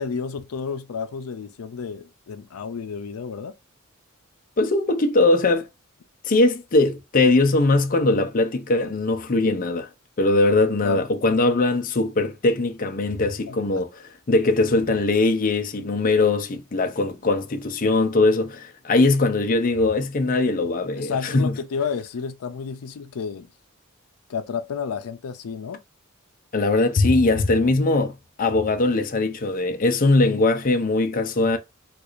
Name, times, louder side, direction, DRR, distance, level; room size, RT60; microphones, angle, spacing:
voice 1, 0.0-3.6 10.8-11.1 13.5-13.8 20.9-23.5 24.3-25.8, left 6 dB, 90° left, 0.5 m, -31 dB
voice 2, 4.6-5.7 6.2-9.9 10.2-13.9 14.3-21.5 26.5-31.6, left 2 dB, 40° left, 0.5 m, -21 dB
4.5 x 2.4 x 2.5 m
head